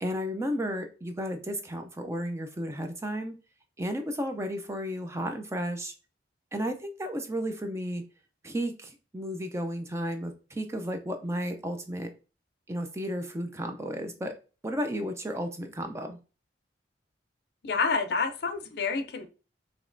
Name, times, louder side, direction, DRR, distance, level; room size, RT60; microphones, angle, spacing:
voice 1, 0.0-3.4 3.8-5.9 6.5-8.0 8.4-12.1 12.7-14.3 14.6-16.2, equal, 15° right, 5 dB, 0.4 m, -33 dB
voice 2, 17.6-19.3, left 4 dB, 55° left, 9 dB, 0.5 m, -28 dB
5.1 x 2.9 x 2.5 m, 0.34 s
head